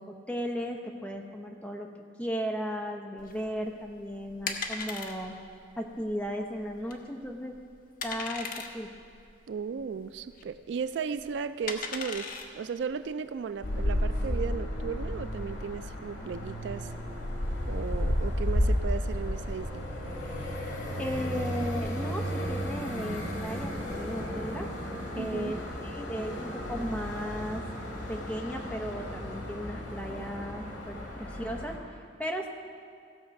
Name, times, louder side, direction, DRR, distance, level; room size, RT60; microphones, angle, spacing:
voice 1, 0.0-1.9 2.2-5.4 5.8-7.6 8.0-8.9 21.0-24.7 25.1-27.6 28.1-32.5, equal, 5° left, 2 dB, 0.8 m, -36 dB
sound 1, 3.2-13.8, left 5 dB, 45° left, 0.8 m, -40 dB
voice 2, 9.5-16.9 17.7-19.9 25.2-25.5, right 6 dB, 65° right, 12 dB, 0.3 m, -35 dB
sound 2, 13.6-31.8, equal, 80° left, 2.1 m, -33 dB
16.0 x 6.8 x 5.3 m, 2.2 s
head